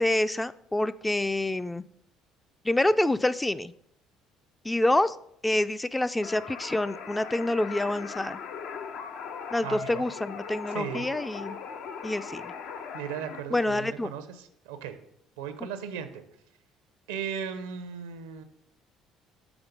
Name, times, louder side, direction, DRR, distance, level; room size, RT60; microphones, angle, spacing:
voice 1, 0.0-1.8 2.6-3.7 4.6-5.2 5.4-8.4 9.5-11.6 12.0-12.5 13.5-14.1, left 1 dB, 10° left, 13 dB, 0.3 m, -27 dB
sound 1, 6.2-13.4, left 6 dB, 70° left, 0.6 m, -39 dB
voice 2, 9.6-10.0 10.7-11.1 12.9-15.0 15.4-16.2 17.1-18.4, right 7 dB, 90° right, 10 dB, 0.6 m, -36 dB
6.0 x 3.8 x 5.2 m, 0.73 s
hypercardioid pair, 70°, 0 cm